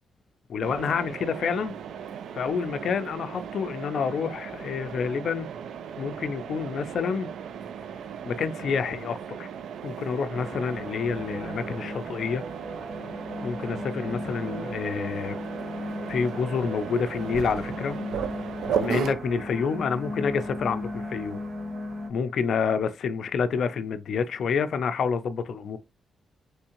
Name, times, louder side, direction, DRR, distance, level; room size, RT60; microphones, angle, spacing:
voice 1, 0.5-1.7 2.3-5.5 6.0-7.3 8.3-9.5 9.8-12.4 13.4-15.4 16.1-18.0 18.7-21.4 22.1-25.8, left 6 dB, 60° left, 0.4 m, -28 dB
Mechanisms, 0.6-19.1, right 8 dB, 85° right, 0.3 m, -36 dB
sound 1, 10.3-22.1, left 1 dB, 70° right, 1.1 m, -36 dB
3.5 x 3.1 x 2.9 m
wide cardioid pair, 160°, 0 cm